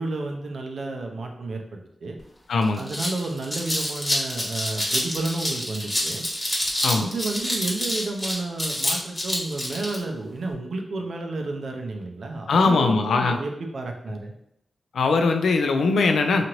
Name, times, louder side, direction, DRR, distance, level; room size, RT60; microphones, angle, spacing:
voice 1, 0.0-1.6 2.0-2.2 2.8-6.2 6.9-14.3, right 2 dB, 75° right, 2 dB, 0.5 m, -31 dB
sound 1, 2.2-2.3 2.6-10.0, equal, 20° left, 1.1 m, -27 dB
voice 2, 2.5-2.8 6.8-7.1 12.5-13.4 14.9-16.4, left 4 dB, 90° left, 5 dB, 0.3 m, -21 dB
2.8 x 2.5 x 3.0 m, 0.77 s
cardioid pair, 55°, 0 cm